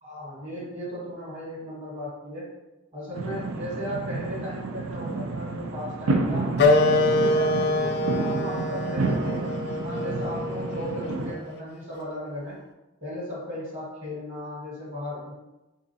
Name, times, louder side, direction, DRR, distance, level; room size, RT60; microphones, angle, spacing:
voice 1, 0.0-2.5 2.9-6.5 6.9-12.6 13.0-15.3, equal, 35° right, -7 dB, 1.3 m, -36 dB
sound 1, 3.1-11.3, right 3 dB, 90° right, 0.4 m, -30 dB
Wind instrument woodwind instrument, 6.6-11.7, left 2 dB, 50° left, 0.3 m, -25 dB
3.8 x 2.4 x 2.7 m, 1.1 s
head